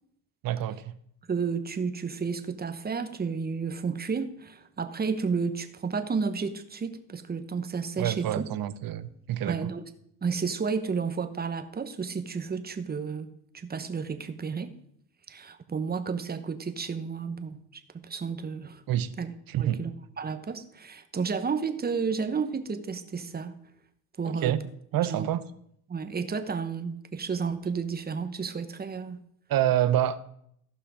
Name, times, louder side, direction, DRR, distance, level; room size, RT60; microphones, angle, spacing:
voice 1, 0.4-0.9 8.0-9.7 18.9-19.1 19.5-19.8 24.2-24.6 24.9-25.4 29.5-30.2, right 12 dB, 55° right, 0.8 m, -27 dB
voice 2, 1.3-8.4 9.5-9.8 10.2-14.8 15.3-18.8 19.2-19.3 19.6-23.6 24.2-24.5 25.1-25.3 25.9-29.2, right 5 dB, 20° right, 1.0 m, -32 dB
14.5 x 5.7 x 5.0 m
cardioid pair, 95°, 42 cm